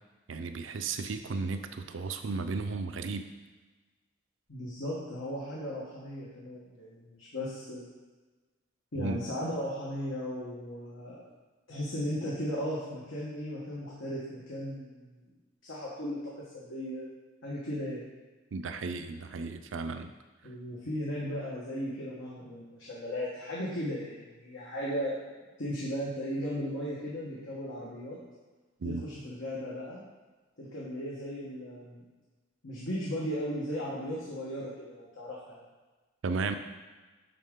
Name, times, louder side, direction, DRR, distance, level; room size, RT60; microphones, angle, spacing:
voice 1, 0.3-3.3 8.9-9.2 18.5-20.1 28.8-29.0 36.2-36.6, right 4 dB, 75° right, 8 dB, 0.5 m, -34 dB
voice 2, 4.5-7.9 8.9-11.2 11.7-15.3 15.6-17.1 17.4-18.0 20.4-25.2 25.6-28.2 28.8-30.0 30.6-32.0 32.6-35.6, equal, 80° left, -6 dB, 1.3 m, -36 dB
9.9 x 3.7 x 3.7 m, 1.3 s
head